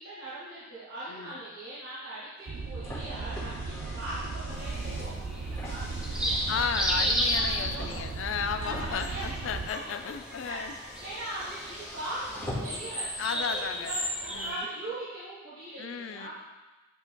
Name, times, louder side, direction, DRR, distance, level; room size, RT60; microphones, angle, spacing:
voice 1, 0.0-8.0 8.6-9.3 9.7-9.8 10.4-16.3, right 1 dB, 65° right, -10 dB, 1.8 m, -40 dB
voice 2, 1.1-1.4 6.5-10.7 13.2-13.9 14.3-14.7 15.8-16.3, left 6 dB, 70° left, 8 dB, 0.4 m, -34 dB
Car, 2.4-13.0, left 1 dB, 15° left, 2.0 m, -44 dB
sound 1, 2.5-9.7, right 3 dB, 85° right, 0.4 m, -36 dB
sound 2, 4.5-14.6, equal, 5° right, 0.8 m, -34 dB
8.4 x 5.1 x 2.3 m, 1.1 s
head